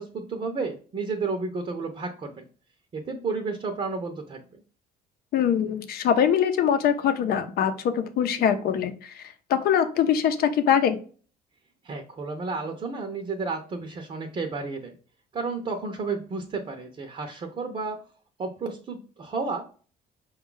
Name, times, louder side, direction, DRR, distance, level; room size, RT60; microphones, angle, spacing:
voice 1, 0.0-2.4 2.9-4.4 11.8-15.0 15.3-18.0 18.4-19.6, right 4 dB, 35° right, 5 dB, 0.7 m, -32 dB
voice 2, 5.3-11.0, left 8 dB, 65° left, 9 dB, 0.7 m, -23 dB
5.2 x 2.4 x 3.8 m, 0.40 s
cardioid pair, 110°, 17 cm